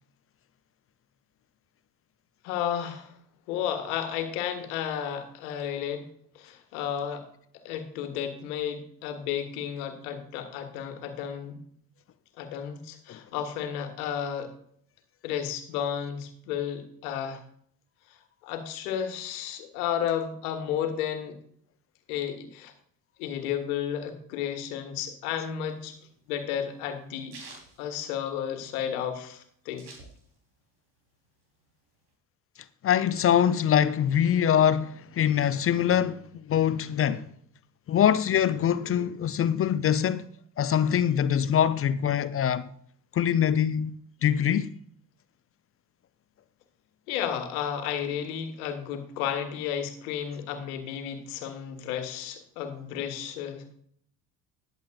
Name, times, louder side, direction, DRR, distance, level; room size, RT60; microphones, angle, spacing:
voice 1, 2.4-3.1 3.5-6.0 6.4-7.3 7.5-11.6 12.4-14.5 15.2-17.4 18.1-18.2 18.4-21.4 22.1-22.7 23.2-26.0 26.3-27.4 27.8-29.9 47.1-53.7, left 9 dB, 70° left, 1.6 m, -32 dB
sound 1, 25.6-28.7 29.1-29.2 29.3-30.6 31.0-32.1, right 3 dB, 65° right, 3.8 m, -49 dB
voice 2, 32.8-37.3 37.9-40.3 40.6-42.7 43.1-44.7, left 9 dB, 30° left, 0.5 m, -24 dB
20.5 x 7.8 x 2.5 m
figure-of-eight pair, 55°, 47 cm